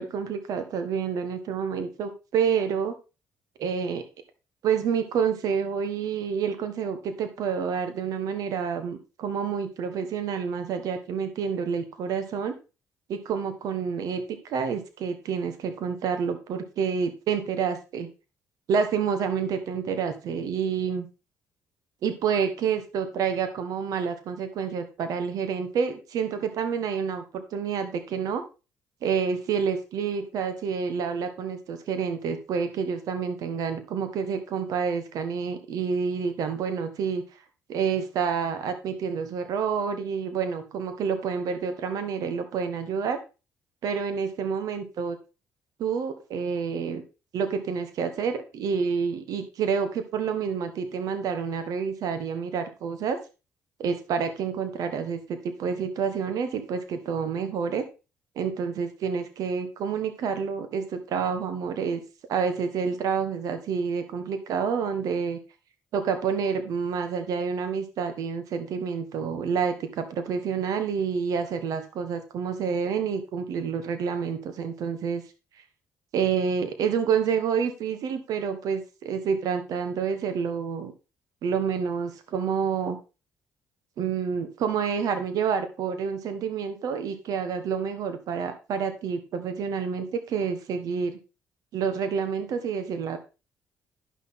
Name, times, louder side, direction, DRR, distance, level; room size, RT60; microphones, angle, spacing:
voice 1, 0.0-2.9 3.6-4.0 4.6-12.5 13.1-18.1 18.7-21.1 22.0-28.4 29.0-37.2 37.7-43.2 43.8-45.2 45.8-47.0 47.3-53.2 53.8-57.8 58.3-62.0 62.3-65.4 65.9-75.2 76.1-80.9 81.4-83.0 84.0-91.2 91.7-93.2, right 6 dB, 70° right, 9 dB, 1.4 m, -28 dB
11.0 x 6.0 x 3.7 m, 0.30 s
cardioid pair, 80°, 6 cm